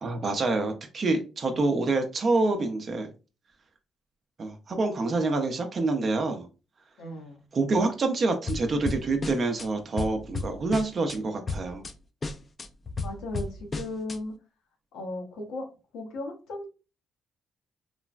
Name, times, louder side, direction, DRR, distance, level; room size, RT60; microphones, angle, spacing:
voice 1, 0.0-3.1 4.4-6.5 7.5-11.8, right 3 dB, 45° right, 5 dB, 0.4 m, -27 dB
voice 2, 7.0-7.4 13.0-14.3 14.9-15.7 15.9-16.7, left 2 dB, 90° left, 2 dB, 0.8 m, -36 dB
sound 1, 8.5-9.7 10.0-11.2 11.5-11.9 12.2-14.2, left 3 dB, 35° left, 0.3 m, -33 dB
3.1 x 2.0 x 2.4 m, 0.32 s
cardioid pair, 90°, 0 cm